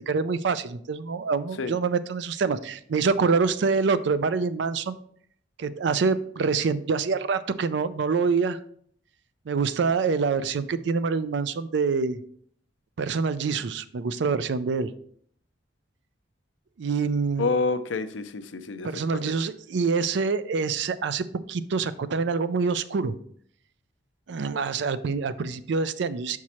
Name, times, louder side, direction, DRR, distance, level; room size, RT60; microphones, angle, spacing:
voice 1, 0.0-5.0 5.6-8.6 9.5-12.2 13.0-14.9 16.8-17.5 18.8-23.2 24.3-26.4, right 5 dB, 65° right, 14 dB, 0.4 m, -26 dB
voice 2, 17.4-19.3, left 4 dB, 85° left, 11 dB, 0.5 m, -28 dB
5.9 x 4.6 x 4.2 m, 0.62 s
head